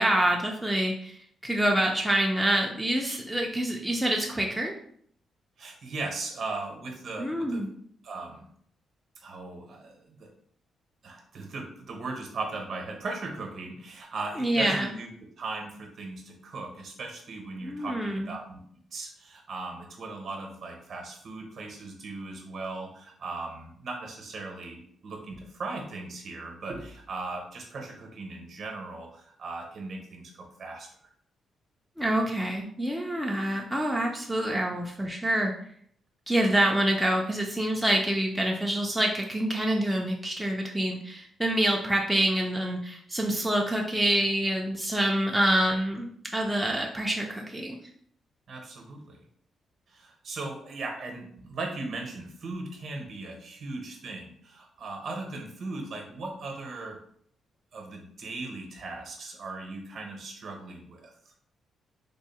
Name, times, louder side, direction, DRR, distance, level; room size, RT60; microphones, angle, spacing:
voice 1, 0.0-4.7 7.2-7.7 14.4-14.9 17.6-18.3 32.0-35.5 36.3-47.8, right 1 dB, ahead, -1 dB, 0.3 m, -26 dB
voice 2, 5.6-7.7 8.0-8.5 9.2-10.3 11.0-15.1 15.4-18.6 18.9-30.9 48.5-49.2 49.9-57.0 57.7-61.1, right 3 dB, 50° right, 2 dB, 0.7 m, -38 dB
3.5 x 2.0 x 4.0 m, 0.64 s
wide cardioid pair, 175°, 0 cm